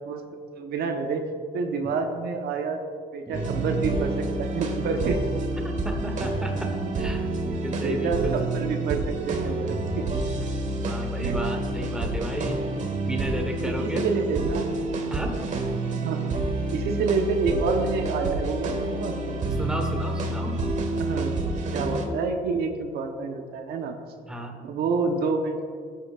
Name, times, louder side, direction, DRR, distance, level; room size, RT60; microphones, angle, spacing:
voice 1, 0.5-1.2 1.5-2.8 3.1-5.2 7.5-10.1 11.2-11.4 13.6-14.7 16.0-16.2 16.7-19.4 20.9-24.0 24.6-25.6, right 4 dB, 70° right, 4 dB, 1.1 m, -28 dB
sound 1, 3.3-22.1, right 2 dB, 45° right, 1.4 m, -28 dB
voice 2, 5.6-8.4 10.8-14.0 15.1-15.4 19.6-20.6 24.3-24.6, right 1 dB, 5° right, 3 dB, 1.3 m, -33 dB
15.5 x 8.7 x 2.5 m, 2.1 s
cardioid pair, 110°, 17 cm